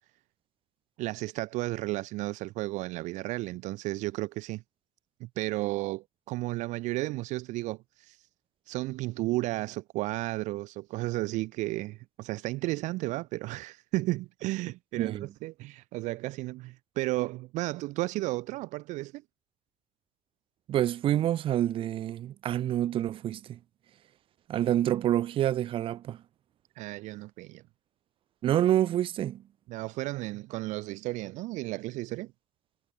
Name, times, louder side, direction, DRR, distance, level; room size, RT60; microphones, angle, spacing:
voice 1, 1.0-4.6 5.2-8.2 8.7-19.2 26.8-27.6 29.7-32.3, right 19 dB, 60° right, 0.7 m, -33 dB
voice 2, 15.0-15.3 20.7-23.6 24.5-26.2 28.4-29.4, right 12 dB, 40° right, 1.0 m, -27 dB
cardioid pair, 165°, 14 cm